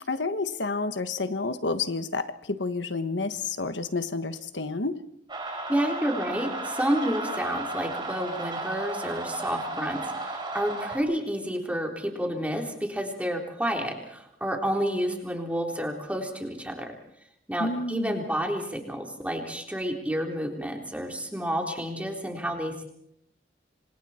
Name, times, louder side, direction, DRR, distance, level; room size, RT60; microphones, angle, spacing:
voice 1, 0.1-5.0 17.6-18.2, left 3 dB, 80° left, 10 dB, 1.4 m, -30 dB
sound 1, 5.3-11.0, right 2 dB, 25° right, 4.8 m, -34 dB
voice 2, 5.7-16.9 17.5-22.9, equal, 10° right, 2 dB, 3.8 m, -30 dB
27.5 x 26.5 x 4.4 m, 0.77 s
head